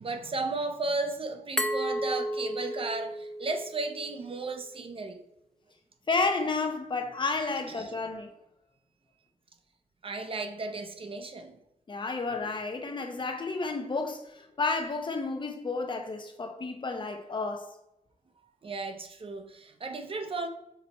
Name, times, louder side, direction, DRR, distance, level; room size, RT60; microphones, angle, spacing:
voice 1, 0.0-5.2 7.7-7.9 10.0-11.6 18.6-20.5, right 3 dB, 40° right, 0.7 m, -34 dB
Glass, 1.6-4.4, equal, 5° left, 0.5 m, -33 dB
voice 2, 6.1-8.3 11.9-17.7, left 3 dB, 35° left, 0.7 m, -31 dB
6.0 x 4.1 x 4.2 m
wide cardioid pair, 150°, 14 cm